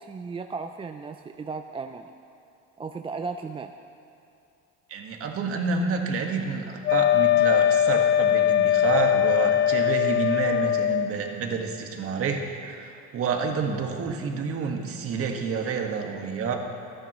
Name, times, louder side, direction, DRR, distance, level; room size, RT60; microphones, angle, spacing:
voice 1, 0.0-2.1 2.8-3.7, right 4 dB, 20° right, 6 dB, 0.4 m, -35 dB
voice 2, 4.9-16.6, right 5 dB, 50° right, 2 dB, 1.7 m, -29 dB
Wind instrument woodwind instrument, 6.8-11.1, left 10 dB, 40° left, 0.7 m, -21 dB
28.5 x 9.8 x 3.1 m, 2.5 s
cardioid pair, 105°, 29 cm